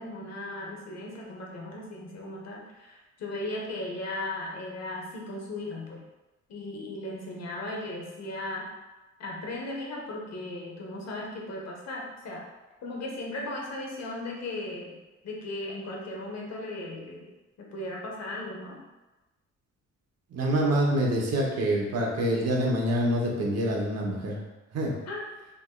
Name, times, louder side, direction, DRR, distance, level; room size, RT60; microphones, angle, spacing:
voice 1, 0.0-6.0 6.5-8.7 9.2-12.5 12.8-15.0 15.2-17.3 17.6-18.8 25.1-25.3, left 2 dB, 60° left, -1 dB, 0.9 m, -37 dB
voice 2, 20.3-24.4 24.7-24.9, right 1 dB, 55° right, -1 dB, 0.9 m, -26 dB
3.7 x 2.9 x 2.2 m, 1.1 s
cardioid pair, 90°, 30 cm